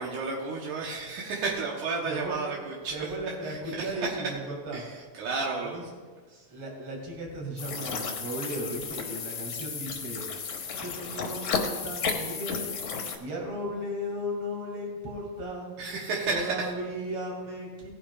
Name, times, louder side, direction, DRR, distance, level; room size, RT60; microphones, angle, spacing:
voice 1, 0.0-2.9 3.4-4.3 4.7-5.8 15.8-16.7, right 4 dB, 75° right, -2 dB, 2.6 m, -32 dB
voice 2, 2.0-2.4 2.9-4.8 5.6-5.8 6.5-10.3 10.8-11.5 11.8-12.8 13.2-15.8 16.3-17.9, equal, 40° right, -1 dB, 3.0 m, -36 dB
sound 1, 7.6-13.2, left 5 dB, 65° left, 1.9 m, -33 dB
18.0 x 10.0 x 2.4 m, 1.5 s
omnidirectional pair, 3.7 m